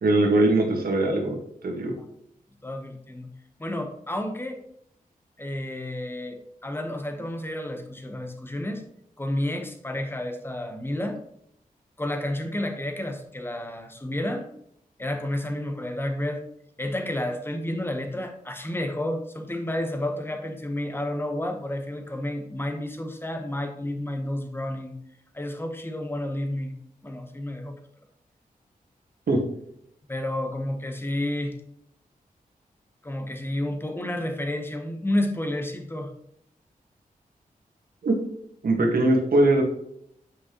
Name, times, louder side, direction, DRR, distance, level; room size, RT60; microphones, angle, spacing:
voice 1, 0.0-1.4 1.6-1.9 29.3-29.4 38.0-38.1 38.6-39.6, right 2 dB, 85° right, 1 dB, 1.6 m, -21 dB
voice 2, 2.6-3.3 3.6-4.6 5.4-8.8 9.2-11.2 12.0-14.5 15.0-16.4 16.8-25.0 25.3-26.7 27.0-27.7 30.1-31.6 33.0-36.1, left 1 dB, 15° left, 5 dB, 1.0 m, -30 dB
8.6 x 5.1 x 3.0 m, 0.72 s
wide cardioid pair, 120°, 15 cm